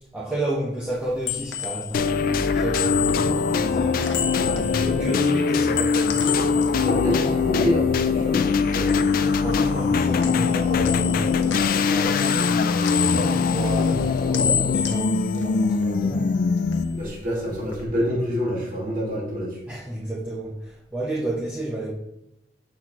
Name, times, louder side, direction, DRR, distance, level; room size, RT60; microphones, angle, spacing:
voice 1, 0.1-4.0 4.4-6.9 8.8-12.3 12.8-16.3 19.7-21.9, right 1 dB, 10° right, -7 dB, 0.9 m, -32 dB
sound 1, 0.9-8.2 8.5-9.9 10.2-16.2 16.5-17.8, left 7 dB, 85° left, 0.9 m, -31 dB
sound 2, 1.9-17.1, left 5 dB, 50° left, 0.3 m, -22 dB
voice 2, 4.3-4.9 6.8-9.1 16.9-19.5, equal, 50° right, -5 dB, 2.2 m, -27 dB
6.3 x 6.0 x 3.0 m, 0.85 s
head